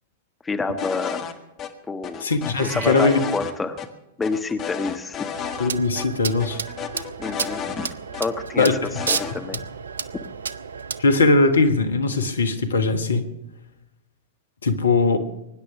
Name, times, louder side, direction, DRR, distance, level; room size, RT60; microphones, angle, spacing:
voice 1, 0.4-1.3 1.9-2.3 2.6-3.8 4.2-5.3 7.2-7.9 8.2-9.6, left 4 dB, 15° left, 6 dB, 1.2 m, -28 dB
sound 1, 0.8-1.3 1.6-1.7 2.0-3.5 3.8-3.9 4.2-5.7 6.0-6.1 6.4-8.2 8.6-9.3, left 8 dB, 30° left, 1.6 m, -33 dB
voice 2, 2.2-3.2 5.6-6.6 8.6-8.7 11.0-13.2 14.6-15.2, left 3 dB, 75° left, 8 dB, 1.4 m, -20 dB
Meow, 2.5-3.3, right 7 dB, 40° right, 1.3 m, -36 dB
sound 2, 5.3-11.0, right 6 dB, 70° right, 0.6 m, -32 dB
23.0 x 10.0 x 6.2 m, 0.91 s
figure-of-eight pair, 95°, 0 cm